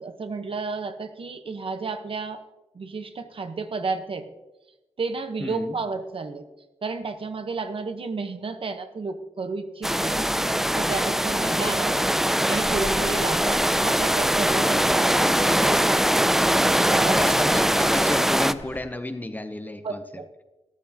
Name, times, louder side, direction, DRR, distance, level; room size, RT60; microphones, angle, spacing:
voice 1, 0.0-2.4 2.7-4.3 5.0-6.4 6.8-10.2 10.7-12.0 12.5-16.1 16.9-17.2 19.8-20.3, right 4 dB, 60° right, 8 dB, 1.0 m, -32 dB
voice 2, 5.4-5.8 10.1-10.5 11.4-11.8 17.0-20.0, left 1 dB, 15° left, 9 dB, 0.7 m, -31 dB
sound 1, 9.8-18.5, equal, 5° right, 0.3 m, -22 dB
sound 2, 12.5-18.8, left 2 dB, 85° left, 3.2 m, -41 dB
13.5 x 13.0 x 2.9 m, 1.0 s
wide cardioid pair, 135°, 11 cm